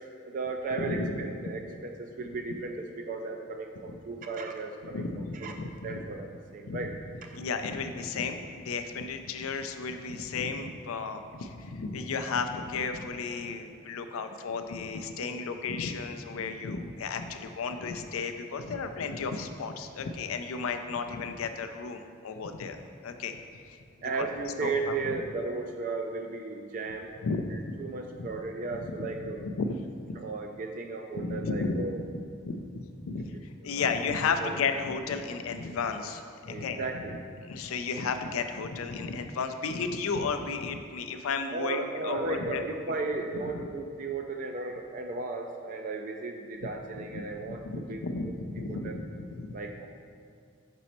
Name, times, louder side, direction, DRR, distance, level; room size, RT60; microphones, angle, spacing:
voice 1, 0.3-6.9 7.2-7.4 15.2-15.6 24.0-27.1 27.5-29.5 30.2-32.0 33.6-33.9 34.4-34.5 36.5-37.2 41.5-48.0 48.7-49.0 49.5-49.9, right 3 dB, 40° right, 4 dB, 0.3 m, -35 dB
voice 2, 0.8-1.5 4.9-6.0 6.7-6.9 7.3-23.4 23.7-23.8 24.2-24.3 24.6-25.2 27.2-27.6 28.2-28.3 28.8-29.8 30.1-30.2 31.1-31.8 32.4-33.4 33.6-37.0 37.4-42.8 46.6-46.7 47.1-49.6, left 4 dB, 80° left, 7 dB, 0.4 m, -33 dB
6.1 x 4.1 x 4.3 m, 2.3 s
head